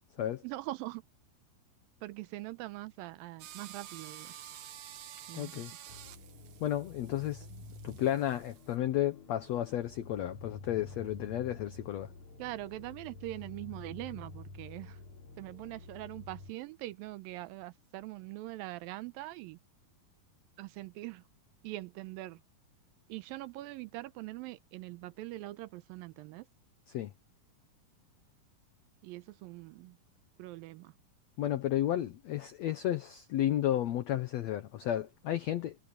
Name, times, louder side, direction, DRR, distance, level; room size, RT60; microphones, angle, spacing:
voice 1, 0.4-1.0 2.0-4.3 5.3-5.6 12.4-15.0 15.4-19.6 20.6-21.2 21.6-22.4 23.1-26.5 29.0-30.0 30.4-30.9, right 18 dB, 85° right, 2.3 m, -42 dB
sound 1, 3.4-8.8, right 11 dB, 65° right, 2.0 m, -50 dB
voice 2, 5.3-5.7 6.6-7.5 7.8-12.1 26.9-27.1 31.4-35.8, left 12 dB, 85° left, 1.5 m, -32 dB
sound 2, 5.9-16.5, left 2 dB, 50° left, 6.4 m, -50 dB
omnidirectional pair, 4.3 m